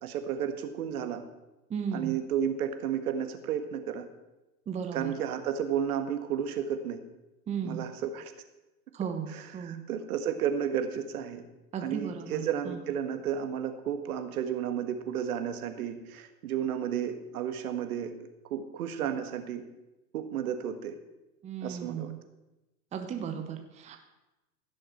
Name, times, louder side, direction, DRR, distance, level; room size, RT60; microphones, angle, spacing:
voice 1, 0.0-1.2 1.9-4.1 4.9-7.0 7.6-8.3 9.3-11.4 11.8-18.1 18.5-19.6 20.1-20.9 21.6-22.1, right 8 dB, 65° right, 8 dB, 1.6 m, -32 dB
voice 2, 1.7-2.2 4.7-5.1 7.5-7.8 8.9-9.8 11.7-12.8 21.4-22.2 22.9-24.0, right 7 dB, 15° right, 5 dB, 0.9 m, -35 dB
15.5 x 6.5 x 5.7 m, 1.0 s
hypercardioid pair, 120°, 47 cm